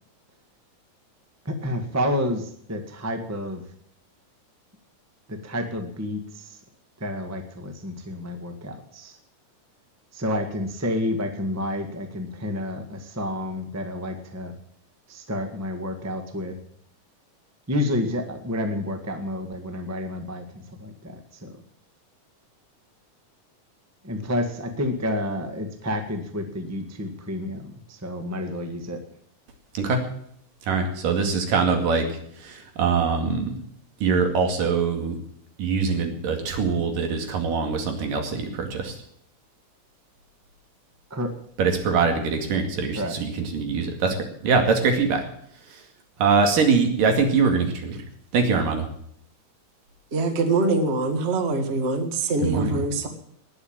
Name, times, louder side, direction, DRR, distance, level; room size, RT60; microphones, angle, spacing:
voice 1, 1.4-3.6 5.3-6.6 7.0-9.2 10.1-14.5 15.1-16.6 17.7-21.6 24.0-29.0 41.1-41.3 42.9-43.2, left 1 dB, 10° right, 5 dB, 0.7 m, -30 dB
voice 2, 30.7-32.1 32.4-33.5 34.0-35.2 35.6-39.0 41.6-44.2 44.4-45.2 46.2-48.0 48.3-48.9 52.4-52.8, right 5 dB, 80° right, 4 dB, 3.9 m, -23 dB
voice 3, 50.1-53.1, right 3 dB, 30° right, 6 dB, 1.2 m, -24 dB
19.5 x 7.2 x 8.8 m, 0.69 s
omnidirectional pair, 3.8 m